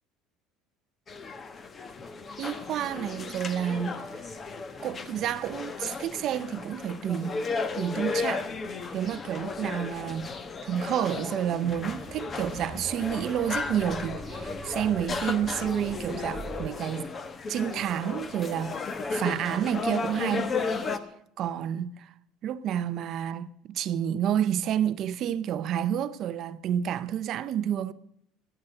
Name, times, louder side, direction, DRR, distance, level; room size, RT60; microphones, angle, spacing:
sound 1, 1.1-21.0, left 4 dB, 25° left, 1.1 m, -34 dB
voice 1, 2.4-4.1 4.8-7.4 7.7-8.5 8.9-10.3 10.6-17.1 17.5-20.6 20.9-21.0 21.4-22.1 22.4-27.9, right 9 dB, 45° right, 0.7 m, -30 dB
sound 2, 11.6-16.7, right 5 dB, 20° right, 2.0 m, -44 dB
14.0 x 11.5 x 7.8 m
cardioid pair, 155°, 0 cm